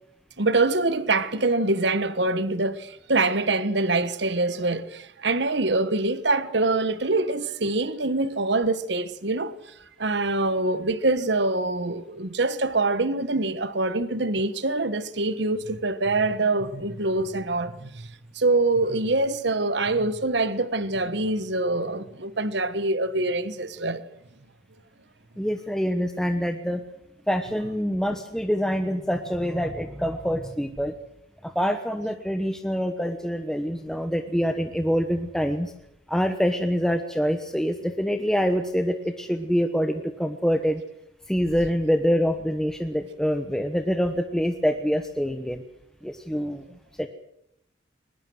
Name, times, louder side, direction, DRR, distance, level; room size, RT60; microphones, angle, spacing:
voice 1, 0.4-9.5 10.0-18.1 18.3-24.0, right 2 dB, 60° right, 1.3 m, -25 dB
voice 2, 25.4-26.8 27.3-30.9 31.4-35.7 36.1-40.8 41.3-45.6 46.0-46.6 47.0-47.1, equal, 5° left, 1.1 m, -25 dB
22.0 x 20.5 x 7.8 m
head